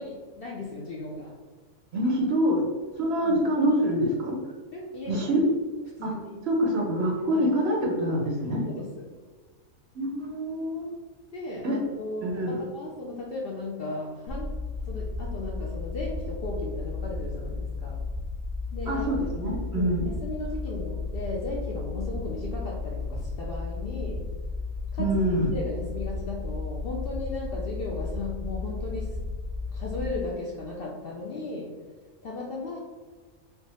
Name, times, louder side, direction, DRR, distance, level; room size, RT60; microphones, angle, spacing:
voice 1, 0.0-1.3 3.2-3.4 4.7-5.3 6.0-6.5 7.3-7.5 8.6-8.9 11.3-14.5 14.8-18.0 18.7-19.1 19.7-24.3 24.9-25.2 25.5-29.2 29.7-31.8 32.2-32.8, left 2 dB, 70° left, -3 dB, 0.5 m, -36 dB
voice 2, 1.9-2.7 3.0-4.4 5.1-5.4 6.0-6.1 6.5-8.6 9.9-10.9 11.6-11.8 12.2-12.6 18.9-20.1 25.0-25.5, equal, 60° right, 0 dB, 0.7 m, -25 dB
sound 1, 14.3-30.1, left 3 dB, 15° right, 0.5 m, -34 dB
3.3 x 2.1 x 4.0 m, 1.4 s
omnidirectional pair, 1.5 m